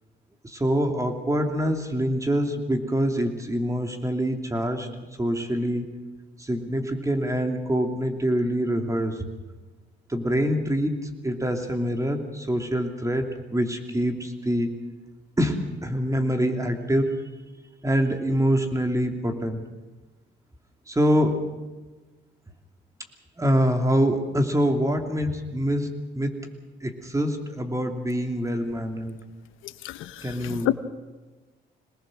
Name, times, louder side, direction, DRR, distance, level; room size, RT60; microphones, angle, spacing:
voice 1, 0.4-4.9 5.2-5.9 6.4-9.3 10.1-14.8 15.4-17.2 17.8-19.7 20.9-21.4 23.4-26.4 26.8-29.2 30.2-30.7, equal, 15° right, 4 dB, 2.8 m, -25 dB
voice 2, 29.6-30.7, left 14 dB, 90° left, 12 dB, 0.9 m, -29 dB
23.0 x 19.5 x 6.4 m, 1.2 s
cardioid pair, 90°, 20 cm